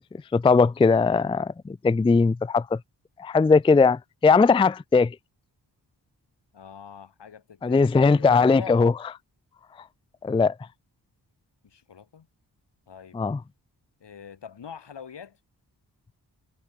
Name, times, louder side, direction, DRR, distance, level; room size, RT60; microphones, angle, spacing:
voice 1, 0.3-2.8 3.2-5.2 7.6-8.9 10.2-10.5 13.1-13.4, left 4 dB, 15° left, 0.4 m, -19 dB
voice 2, 6.5-8.9 11.6-12.3 12.9-13.2 14.0-15.4, left 7 dB, 80° left, 4.5 m, -43 dB
wide cardioid pair, 125°, 41 cm